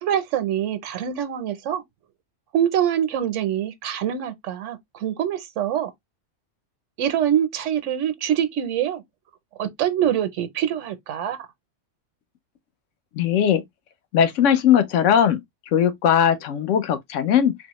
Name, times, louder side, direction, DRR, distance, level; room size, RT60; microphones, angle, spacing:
voice 1, 0.0-1.8 2.5-5.9 7.0-9.0 9.6-11.5, right 10 dB, 80° right, 1.0 m, -24 dB
voice 2, 13.2-13.6 14.1-15.4 15.7-17.5, left 9 dB, 90° left, 1.0 m, -19 dB
4.0 x 2.0 x 2.9 m
omnidirectional pair, 1.3 m